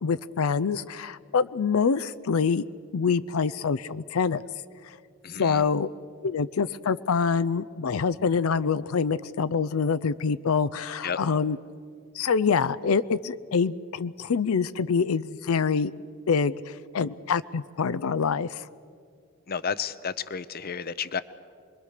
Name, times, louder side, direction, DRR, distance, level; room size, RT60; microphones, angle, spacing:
voice 1, 0.0-2.6 2.9-4.4 4.8-4.9 5.4-5.9 6.2-11.6 12.1-15.9 16.3-18.7, left 5 dB, 90° left, 15 dB, 0.5 m, -25 dB
voice 2, 5.2-5.6 11.0-11.2 19.5-21.2, left 6 dB, 45° left, 15 dB, 0.7 m, -31 dB
26.0 x 22.0 x 6.6 m, 2.2 s
head